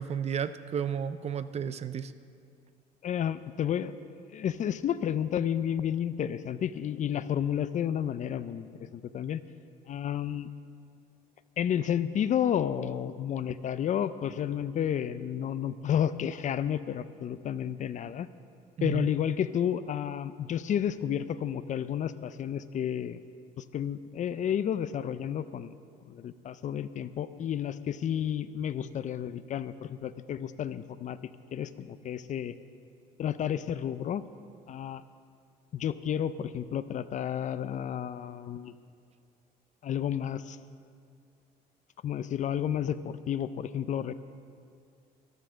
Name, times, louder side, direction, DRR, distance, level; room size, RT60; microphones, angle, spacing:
voice 1, 0.0-2.1 18.8-19.1, right 8 dB, 40° right, 13 dB, 0.5 m, -32 dB
voice 2, 3.0-4.0 4.3-9.4 9.9-10.5 11.6-18.3 18.8-23.2 23.6-25.8 26.0-32.5 33.2-34.2 34.7-35.0 35.7-38.7 39.8-40.6 42.0-44.1, left 9 dB, 45° left, 14 dB, 0.5 m, -31 dB
13.5 x 11.5 x 6.3 m, 2.3 s
cardioid pair, 110°, 17 cm